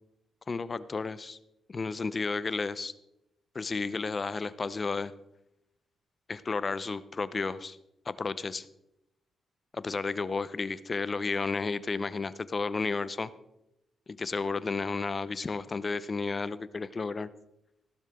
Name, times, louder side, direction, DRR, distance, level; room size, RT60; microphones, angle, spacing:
voice 1, 0.5-1.4 1.7-2.9 3.5-5.1 6.3-7.8 8.1-8.7 9.7-13.3 14.1-17.3, left 4 dB, 40° left, 16 dB, 0.7 m, -32 dB
16.0 x 11.5 x 3.7 m, 0.86 s
supercardioid pair, 60°, 0 cm